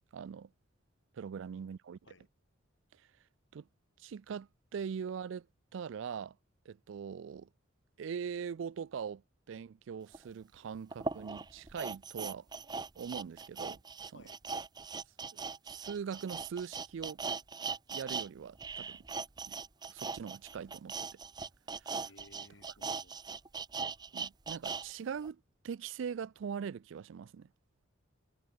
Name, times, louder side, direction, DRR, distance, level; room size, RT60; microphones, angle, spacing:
voice 1, 0.1-0.5 1.1-2.0 2.9-3.1 3.5-3.7 4.0-5.5 5.7-6.4 6.7-7.5 8.0-9.2 9.5-12.5 13.0-13.8 14.0-14.2 15.3-15.4 15.7-17.2 17.9-19.0 19.5-19.6 19.9-21.0 21.8-22.1 24.1-27.5, right 7 dB, 70° right, 0.4 m, -41 dB
voice 2, 1.3-1.7 2.0-2.3 14.1-14.4 22.0-23.4, left 2 dB, 70° left, 7.7 m, -60 dB
sound 1, 10.1-10.2 10.9-18.3 18.5-24.8 25.2-25.3, right 5 dB, 20° right, 0.6 m, -40 dB
head